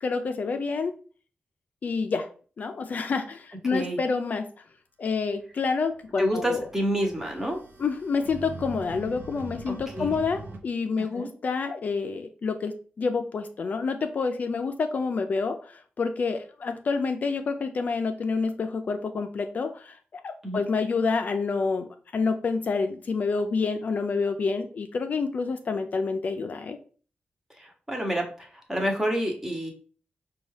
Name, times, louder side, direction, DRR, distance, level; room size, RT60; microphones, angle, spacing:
voice 1, 0.0-0.9 1.8-2.3 2.6-4.5 5.0-6.7 7.8-26.8, left 4 dB, 50° left, 7 dB, 0.4 m, -28 dB
sound 1, 5.8-10.6, right 2 dB, 85° right, 0.7 m, -42 dB
voice 2, 6.2-7.6 9.7-10.1 11.1-11.3 20.4-20.6 27.6-29.7, equal, 10° right, 2 dB, 0.8 m, -28 dB
5.1 x 2.3 x 3.2 m, 0.40 s
wide cardioid pair, 150°, 4 cm